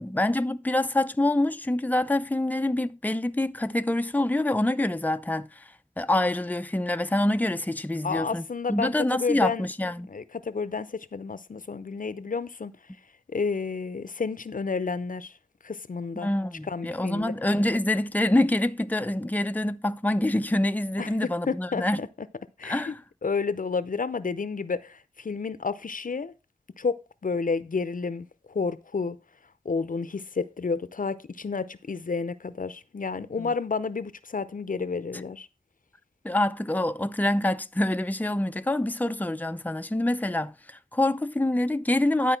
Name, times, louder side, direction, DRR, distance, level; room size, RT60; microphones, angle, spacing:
voice 1, 0.0-10.1 16.2-22.0 22.6-23.0 33.4-33.5 36.2-42.4, left 1 dB, 10° left, 0.5 m, -26 dB
voice 2, 8.0-9.7 10.1-12.7 13.3-15.4 15.6-16.3 16.7-17.3 21.0-22.1 22.6-23.0 23.2-26.3 26.8-29.2 29.6-35.5, left 4 dB, 80° left, 0.7 m, -31 dB
11.0 x 4.7 x 5.8 m
wide cardioid pair, 50°, 14 cm